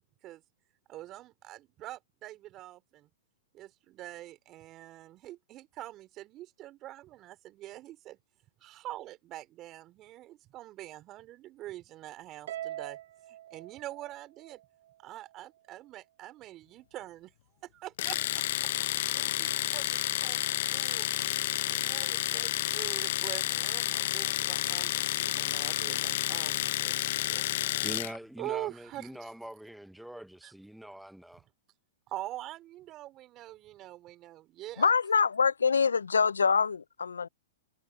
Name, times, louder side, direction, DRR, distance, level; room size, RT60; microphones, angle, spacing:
voice 1, 0.9-3.1 3.5-8.2 8.6-13.0 13.3-14.6 15.0-17.3 17.6-18.4 19.1-21.1 21.7-27.4 28.4-29.3 30.4-30.5 32.1-34.9, right 15 dB, 35° right, 4.4 m, -44 dB
Harp, 12.5-14.9, right 13 dB, 65° right, 1.1 m, -42 dB
Domestic sounds home sounds, 18.0-28.2, left 14 dB, 60° left, 0.9 m, -30 dB
voice 2, 27.8-31.5, right 1 dB, ahead, 0.9 m, -44 dB
voice 3, 34.8-37.3, left 5 dB, 85° left, 0.4 m, -25 dB
hypercardioid pair, 115°, 0 cm